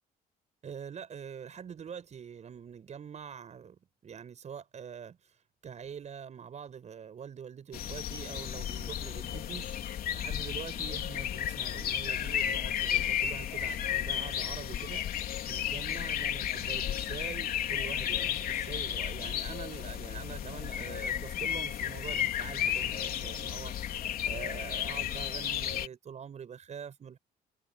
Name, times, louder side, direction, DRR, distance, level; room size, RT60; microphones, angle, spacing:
voice 1, 0.6-5.2 5.6-9.8 10.1-27.2, right 7 dB, 45° right, 6.7 m, -44 dB
Lintuja ja käki, 7.7-25.9, left 10 dB, 60° left, 3.8 m, -33 dB
cardioid pair, 110°, 17 cm